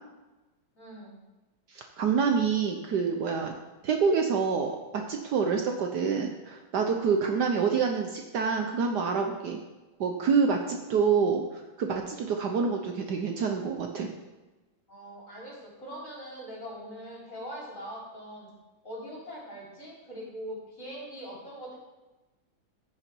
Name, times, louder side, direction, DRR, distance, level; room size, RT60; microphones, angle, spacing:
voice 1, 0.7-1.2 14.9-18.5 18.8-21.8, equal, 40° left, -5 dB, 4.1 m, -42 dB
voice 2, 1.7-3.5 3.8-9.6 10.0-14.1, right 5 dB, 65° right, 3 dB, 1.3 m, -27 dB
15.0 x 5.9 x 4.6 m, 1.1 s
omnidirectional pair, 2.2 m